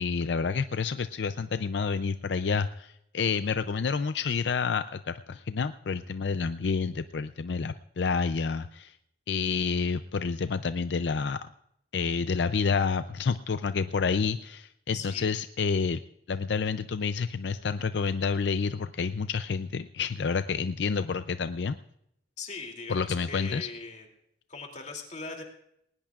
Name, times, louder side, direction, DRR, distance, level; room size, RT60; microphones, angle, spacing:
voice 1, 0.0-9.0 9.3-11.5 11.9-16.0 16.3-21.8 22.9-23.7, left 5 dB, 80° left, 11 dB, 0.5 m, -29 dB
voice 2, 14.9-15.3 22.4-24.1 24.5-25.4, left 4 dB, 40° left, 2 dB, 2.7 m, -40 dB
19.5 x 19.0 x 2.4 m, 0.75 s
head